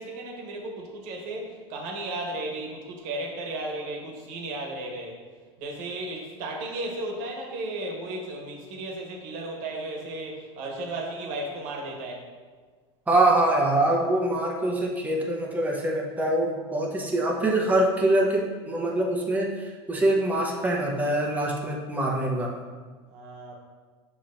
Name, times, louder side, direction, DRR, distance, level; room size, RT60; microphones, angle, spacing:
voice 1, 0.0-5.2 5.6-12.3 23.1-23.5, right 2 dB, 60° right, 0 dB, 1.1 m, -34 dB
voice 2, 13.1-22.5, right 1 dB, 10° right, -1 dB, 0.7 m, -24 dB
6.5 x 3.0 x 2.5 m, 1.4 s
supercardioid pair, 100°, 15 cm